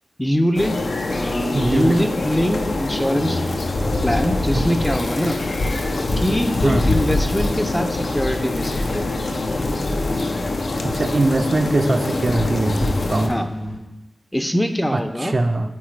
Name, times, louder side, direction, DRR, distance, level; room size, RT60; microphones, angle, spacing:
voice 1, 0.2-0.7 1.1-3.4 4.0-5.4 6.2-9.1 13.3-13.5 14.3-15.4, equal, 10° left, 7 dB, 0.4 m, -22 dB
sound 1, 0.5-13.3, left 2 dB, 85° left, 0.5 m, -24 dB
voice 2, 1.5-2.0 4.5-4.7 6.6-6.8 10.8-13.4 14.9-15.7, right 2 dB, 50° right, 6 dB, 0.4 m, -21 dB
sound 2, 3.2-13.8, left 1 dB, 55° left, 1.0 m, -32 dB
8.7 x 3.7 x 3.2 m, 0.97 s
wide cardioid pair, 75°, 0 cm